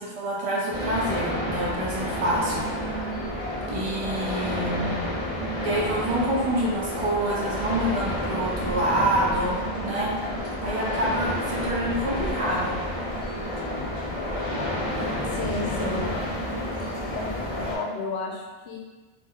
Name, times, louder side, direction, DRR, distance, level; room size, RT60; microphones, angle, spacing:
voice 1, 0.1-3.1 3.7-5.1 5.6-10.1 10.6-12.8, right 1 dB, 50° right, -4 dB, 0.4 m, -27 dB
sound 1, 0.7-17.8, left 1 dB, 40° left, 0.7 m, -30 dB
voice 2, 15.2-16.0 17.1-17.3 17.7-18.8, left 3 dB, 80° left, -2 dB, 0.9 m, -32 dB
2.5 x 2.1 x 3.5 m, 1.2 s
omnidirectional pair, 1.1 m